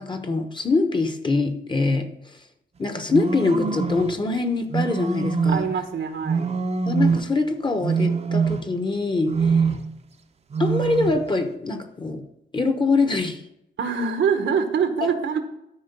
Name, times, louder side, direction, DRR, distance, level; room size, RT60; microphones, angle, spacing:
voice 1, 0.0-2.1 2.8-5.7 6.9-9.6 10.6-12.2 12.5-13.4 15.0-15.1, left 3 dB, 25° left, 7 dB, 0.9 m, -24 dB
sound 1, 3.1-4.2 4.7-5.8 6.2-7.4 7.8-8.9 9.3-10.0 10.5-11.3, right 5 dB, 35° right, 0.7 m, -24 dB
voice 2, 5.5-6.5 13.8-15.4, right 6 dB, 80° right, 7 dB, 1.2 m, -24 dB
13.0 x 5.0 x 5.4 m, 0.82 s
wide cardioid pair, 120°, 19 cm